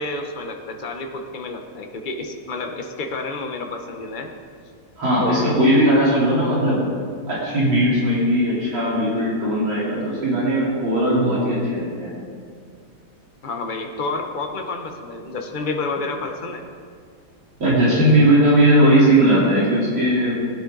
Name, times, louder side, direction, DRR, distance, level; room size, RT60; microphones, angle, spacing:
voice 1, 0.0-4.3 5.2-5.7 13.4-16.6, left 3 dB, 45° left, 3 dB, 0.6 m, -29 dB
voice 2, 5.0-6.8 7.3-12.1 17.6-20.3, right 1 dB, 60° right, -8 dB, 4.6 m, -18 dB
17.5 x 10.0 x 3.9 m, 2.1 s
omnidirectional pair, 2.4 m